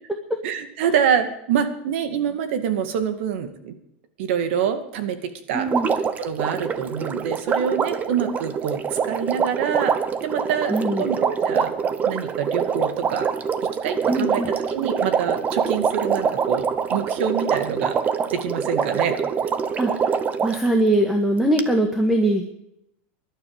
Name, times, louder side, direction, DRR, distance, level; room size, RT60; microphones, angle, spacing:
voice 1, 0.4-3.7 4.2-5.7 6.2-9.9 10.2-11.7 12.1-13.3 13.8-14.4 14.7-18.0 18.3-19.2, right 8 dB, 70° right, 7 dB, 2.2 m, -26 dB
voice 2, 5.5-5.9 10.7-11.1 14.1-14.5 19.8-19.9 20.4-22.5, right 1 dB, 5° right, 3 dB, 1.9 m, -21 dB
Water, 5.7-20.7 21.6-21.7, right 6 dB, 25° right, 1.0 m, -25 dB
20.5 x 12.0 x 5.1 m, 0.80 s
supercardioid pair, 130°, 7 cm